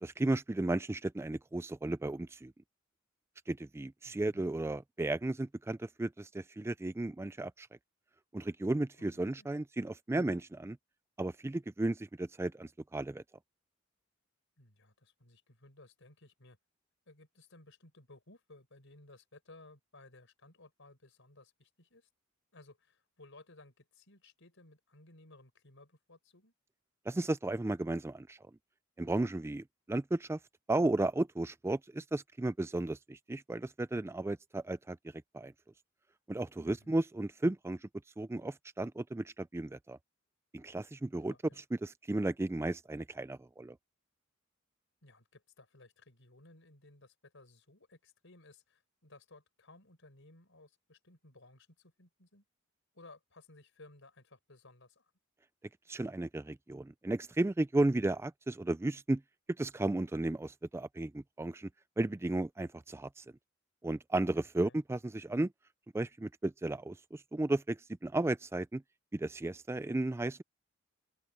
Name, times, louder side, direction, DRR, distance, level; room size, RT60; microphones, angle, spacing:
voice 1, 0.0-2.5 3.5-7.7 8.3-10.8 11.2-13.2 27.1-28.4 29.0-30.4 30.7-35.0 35.3-35.5 36.3-37.8 38.2-40.0 40.5-41.3 41.8-43.7 55.9-59.2 59.6-61.7 62.0-63.2 63.8-65.5 65.9-68.8 69.1-70.4, right 2 dB, 15° right, 0.3 m, -34 dB
voice 2, 4.0-4.4 9.0-9.5 14.6-16.6 17.1-22.1 22.5-26.5 36.6-37.0 41.3-41.6 45.0-52.4 52.9-55.1 64.3-64.8, left 2 dB, 65° left, 6.1 m, -59 dB
open air
head